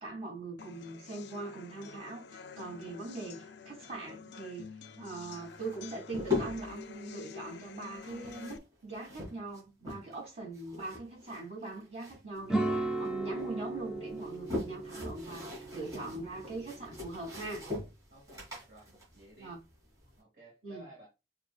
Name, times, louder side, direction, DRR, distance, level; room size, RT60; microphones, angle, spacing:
voice 1, 0.0-4.7 5.0-17.7 19.4-19.6 20.6-21.1, right 2 dB, 35° right, 2.7 m, -42 dB
sound 1, 0.6-8.6, left 6 dB, 70° left, 0.4 m, -48 dB
sound 2, 5.5-6.8 7.9-10.3 10.5-12.4 12.7-13.5 14.1-20.1, left 3 dB, 20° right, 2.7 m, -40 dB
sound 3, 12.5-17.7, right 2 dB, 5° right, 0.4 m, -37 dB
voice 2, 18.1-18.9 19.1-19.6 20.2-21.1, right 1 dB, 50° right, 1.8 m, -55 dB
6.4 x 2.8 x 2.3 m
head